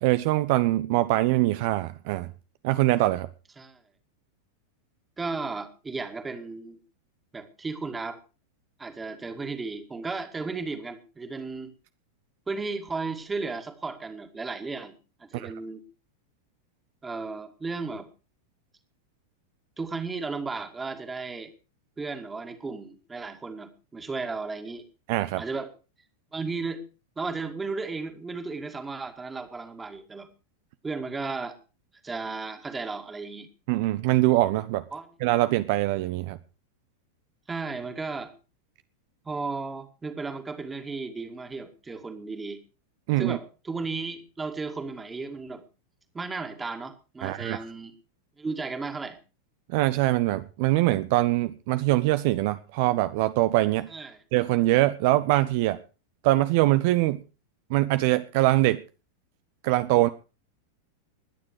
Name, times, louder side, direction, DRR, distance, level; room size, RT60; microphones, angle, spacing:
voice 1, 0.0-2.3 2.6-3.3 15.3-15.5 25.1-25.4 33.7-34.8 35.2-36.4 43.1-43.4 47.2-47.6 49.7-53.9 54.3-55.8 56.2-57.2 57.7-58.8 59.6-60.1, right 17 dB, 50° right, 0.7 m, -23 dB
voice 2, 5.2-6.8 7.3-8.2 8.8-11.7 12.5-14.9 15.2-15.8 17.0-18.1 19.8-21.5 22.0-24.8 25.4-25.7 26.3-26.8 27.2-30.3 30.8-31.6 32.0-33.5 34.9-35.1 37.5-38.3 39.2-42.6 43.2-45.6 46.1-47.9 48.4-49.2 53.9-54.2, right 4 dB, 15° right, 2.2 m, -34 dB
21.0 x 9.7 x 4.7 m
figure-of-eight pair, 90°, 0 cm